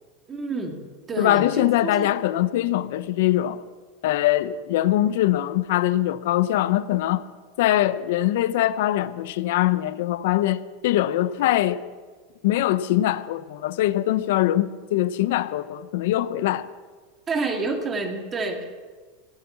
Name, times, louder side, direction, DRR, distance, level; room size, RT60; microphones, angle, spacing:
voice 1, 0.3-0.8 1.1-2.1 17.3-18.7, right 3 dB, 20° right, 2.0 m, -28 dB
voice 2, 1.2-3.6 4.0-7.2 7.6-11.8 12.4-16.7, left 14 dB, 70° left, 0.8 m, -22 dB
17.0 x 11.5 x 6.0 m
supercardioid pair, 150°, 0 cm